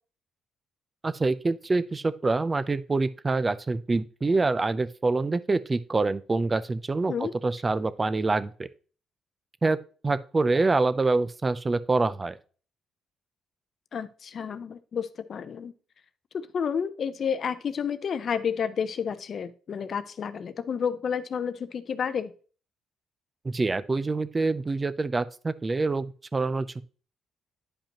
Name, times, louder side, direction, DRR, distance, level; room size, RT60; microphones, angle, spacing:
voice 1, 1.0-7.1 7.4-8.7 9.6-9.8 10.0-12.4 23.4-26.8, right 3 dB, 25° right, 15 dB, 0.5 m, -26 dB
voice 2, 13.9-15.7 16.3-22.3, left 7 dB, 55° left, 13 dB, 0.6 m, -30 dB
10.5 x 5.2 x 2.9 m, 0.40 s
cardioid pair, 90°, 0 cm